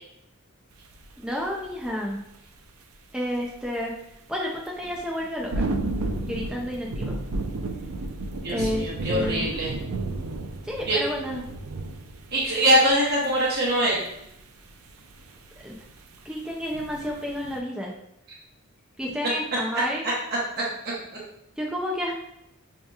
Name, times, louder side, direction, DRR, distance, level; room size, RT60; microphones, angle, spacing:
sound 1, 0.9-1.1 1.5-1.9 2.3-2.4 4.8-13.4 13.7-13.8 14.1-14.4 14.7-16.2 16.6-17.6, right 2 dB, 80° right, 0.5 m, -32 dB
voice 1, 1.2-2.2 3.1-3.9 4.3-5.7 6.3-7.2 8.5-9.5 10.6-11.4 15.6-15.8 16.2-17.9 19.0-20.0 21.6-22.1, equal, 5° right, -2 dB, 0.4 m, -30 dB
voice 2, 8.4-9.7 10.9-11.0 12.3-14.1 20.6-20.7, equal, 50° right, -5 dB, 0.9 m, -22 dB
5.6 x 2.8 x 2.3 m, 0.82 s
head